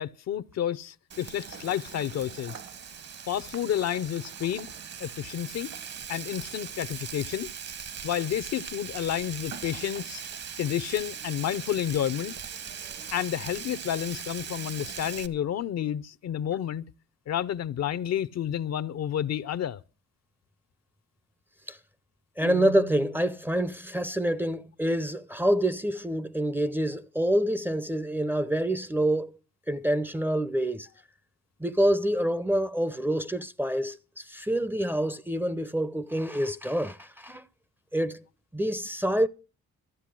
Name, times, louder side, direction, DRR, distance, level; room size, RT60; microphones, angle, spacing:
voice 1, 0.0-2.6 3.3-4.7 5.0-5.7 6.1-7.5 8.0-10.2 10.6-12.3 13.1-16.8 17.3-19.8, left 10 dB, 60° left, 0.7 m, -30 dB
Frying (food), 1.1-15.3, right 7 dB, 55° right, 1.4 m, -40 dB
voice 2, 22.4-29.4 29.7-30.9 31.6-37.4 37.9-38.2 38.5-39.3, right 1 dB, 5° right, 0.6 m, -27 dB
sound 1, 22.4-23.4, right 6 dB, 75° right, 5.1 m, -39 dB
13.5 x 8.0 x 7.6 m
cardioid pair, 90°, 30 cm